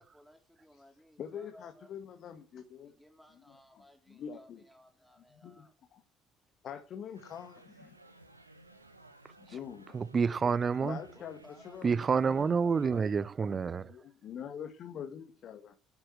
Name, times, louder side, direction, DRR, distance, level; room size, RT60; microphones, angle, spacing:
voice 1, 0.0-1.9 2.8-5.7 11.1-13.0, equal, ahead, 4.2 m, -59 dB
voice 2, 1.2-3.0 3.3-4.6 5.3-6.0 6.6-7.9 9.4-10.0 10.8-12.5 13.8-15.7, left 8 dB, 50° left, 1.6 m, -45 dB
sound 1, 7.1-13.2, right 2 dB, 90° right, 1.1 m, -57 dB
voice 3, 9.9-11.0 11.8-13.9, right 5 dB, 35° right, 0.7 m, -28 dB
11.5 x 8.8 x 7.8 m
figure-of-eight pair, 50°, 0 cm